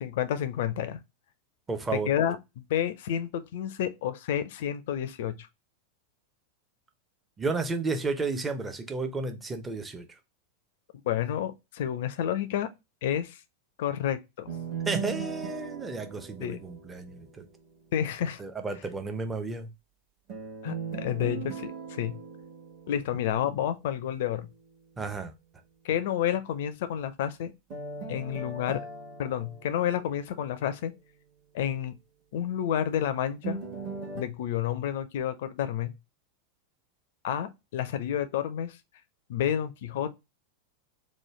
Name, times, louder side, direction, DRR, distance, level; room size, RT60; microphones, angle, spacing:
voice 1, 0.0-1.0 2.1-2.4 2.7-5.5 11.0-12.7 13.0-13.4 13.8-14.5 16.4-16.6 17.9-18.4 20.6-22.2 22.9-24.5 25.8-27.5 28.1-28.8 29.2-30.9 31.5-32.0 32.3-33.6 34.1-35.9 37.2-38.8 39.3-40.1, left 10 dB, 55° left, 0.4 m, -30 dB
voice 2, 1.7-2.1 7.4-10.1 14.9-17.5 18.4-19.7 25.0-25.3, right 3 dB, 15° right, 0.5 m, -32 dB
sound 1, 14.5-17.5 20.3-23.5 27.7-30.8 33.4-34.2, right 5 dB, 40° right, 1.0 m, -39 dB
3.1 x 2.1 x 3.1 m
figure-of-eight pair, 90°, 0 cm